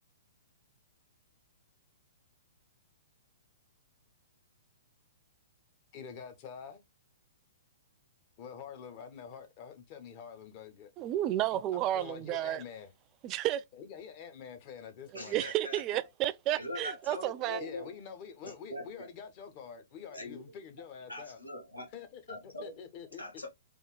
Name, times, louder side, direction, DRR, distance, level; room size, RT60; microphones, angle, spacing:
voice 1, 5.9-6.8 8.4-10.9 11.5-12.9 13.7-15.4 17.6-21.4 21.9-23.2, left 7 dB, 35° left, 0.8 m, -47 dB
voice 2, 11.0-12.6 13.2-13.6 15.3-17.6, right 13 dB, 30° right, 0.3 m, -31 dB
voice 3, 15.1-16.0 16.6-17.9 18.4-19.1 20.1-20.4 21.1-21.9 22.3-22.7 23.2-23.5, left 1 dB, 85° left, 1.3 m, -42 dB
3.4 x 2.4 x 3.2 m
figure-of-eight pair, 115°, 0 cm